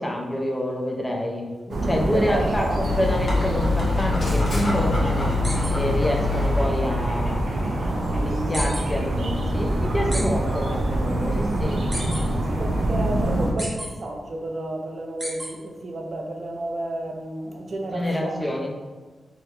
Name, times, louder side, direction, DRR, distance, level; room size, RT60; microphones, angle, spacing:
voice 1, 0.0-5.3 5.7-11.8 17.9-18.7, left 1 dB, 10° left, 0 dB, 0.5 m, -27 dB
sound 1, 1.7-13.5, right 1 dB, 85° right, 0.6 m, -25 dB
voice 2, 1.9-3.2 12.4-18.7, right 2 dB, 50° right, 2 dB, 0.5 m, -31 dB
Dog, 2.8-7.0, left 4 dB, 55° left, 1.0 m, -25 dB
sound 2, 5.4-5.7 8.5-8.8 10.1-10.2 11.9-12.2 13.6-13.9 15.2-15.5, equal, 20° right, 1.0 m, -31 dB
4.7 x 2.1 x 3.1 m, 1.3 s
wide cardioid pair, 130°, 0 cm